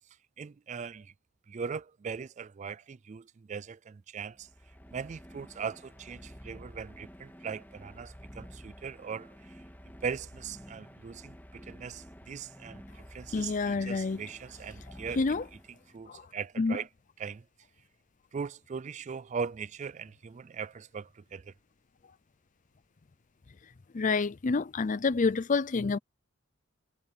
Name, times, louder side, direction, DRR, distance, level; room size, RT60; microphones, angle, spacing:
voice 1, 0.4-1.1 1.5-4.5 4.9-9.6 10.0-15.4 15.9-16.9 17.2-17.4 18.3-21.5, right 6 dB, 30° right, 0.3 m, -40 dB
sound 1, 4.3-16.1, equal, 10° left, 2.4 m, -50 dB
voice 2, 13.3-14.2 15.2-15.4 16.1-16.2 16.6-16.8 23.9-26.0, left 4 dB, 35° left, 0.5 m, -28 dB
head